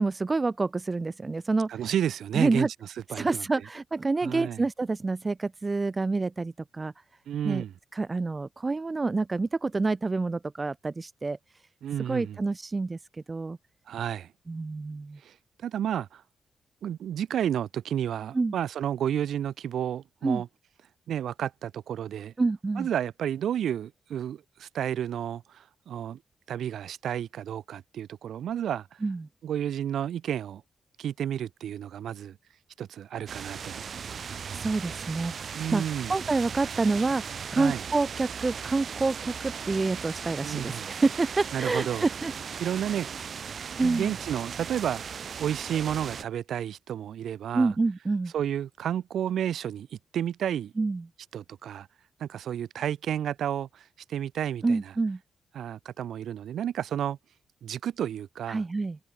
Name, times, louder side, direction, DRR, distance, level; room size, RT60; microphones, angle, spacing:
voice 1, 0.0-1.7 2.3-2.7 3.1-6.9 7.4-7.6 7.9-11.4 12.1-13.0 13.3-13.6 14.5-15.2 18.3-18.6 20.2-20.4 22.4-22.9 29.0-29.3 34.5-42.3 43.8-44.2 47.5-48.3 50.8-51.1 54.6-55.2 58.5-59.0, right 3 dB, 30° right, 2.1 m, -28 dB
voice 2, 1.7-2.7 3.1-3.4 4.2-4.6 7.3-7.7 11.8-12.4 13.9-14.3 15.2-15.3 15.6-16.2 16.8-20.5 21.1-22.3 22.8-26.2 26.5-29.0 29.4-30.6 31.0-32.4 32.8-33.8 35.5-36.1 37.6-37.8 40.4-40.9 41.5-42.1 42.6-43.1 43.8-45.0 45.4-47.7 48.3-49.9 50.1-50.7 51.3-51.9 52.2-54.8 55.5-57.2 57.6-58.6, right 10 dB, 80° right, 6.7 m, -31 dB
sound 1, 33.3-46.2, right 6 dB, 60° right, 3.4 m, -37 dB
cardioid pair, 85°, 0 cm